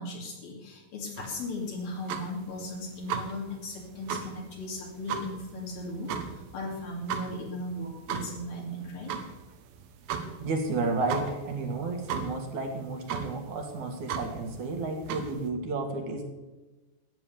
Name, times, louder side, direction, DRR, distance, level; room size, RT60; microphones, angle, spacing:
voice 1, 0.0-9.1, left 1 dB, 65° left, -1 dB, 4.0 m, -37 dB
sound 1, 1.2-15.5, right 7 dB, 70° right, 2.6 m, -38 dB
voice 2, 10.4-16.3, right 3 dB, 55° right, 4 dB, 2.8 m, -32 dB
14.0 x 9.3 x 6.9 m, 1.1 s
omnidirectional pair, 4.7 m